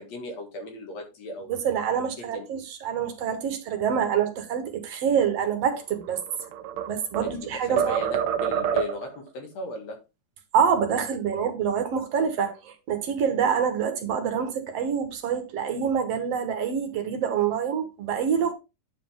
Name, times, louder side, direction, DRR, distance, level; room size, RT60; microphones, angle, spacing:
voice 1, 0.0-1.6 2.2-2.5 7.1-10.0, left 2 dB, 60° left, 3.0 m, -37 dB
voice 2, 1.5-6.2 6.9-8.0 10.5-18.5, right 7 dB, 60° right, 2.1 m, -26 dB
sound 1, 6.0-7.4 7.8-9.2, right 8 dB, 75° right, 1.3 m, -27 dB
9.6 x 5.1 x 3.5 m
omnidirectional pair, 3.5 m